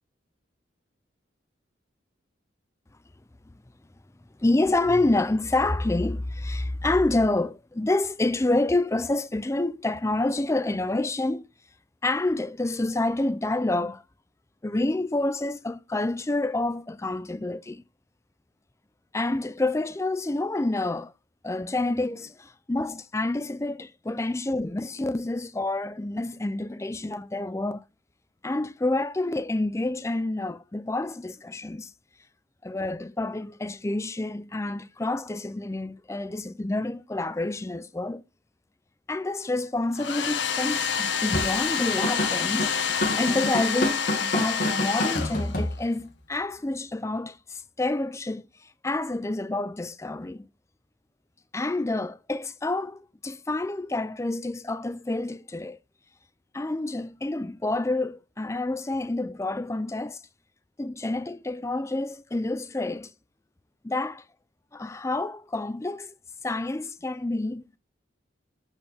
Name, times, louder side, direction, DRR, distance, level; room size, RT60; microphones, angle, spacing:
voice 1, 4.4-11.5 12.0-14.0 14.6-17.8 19.1-21.1 21.4-27.8 28.4-31.9 32.6-38.2 39.1-42.8 43.2-48.5 48.8-50.5 51.5-55.8 56.5-60.2 60.8-63.1 63.8-64.2 64.7-66.1 66.4-67.7, left 2 dB, 15° left, 0.4 m, -28 dB
Domestic sounds home sounds, 39.9-45.8, left 7 dB, 75° left, 0.9 m, -28 dB
Drum kit / Drum, 41.3-46.1, left 1 dB, 50° left, 2.0 m, -29 dB
8.0 x 4.4 x 3.5 m
head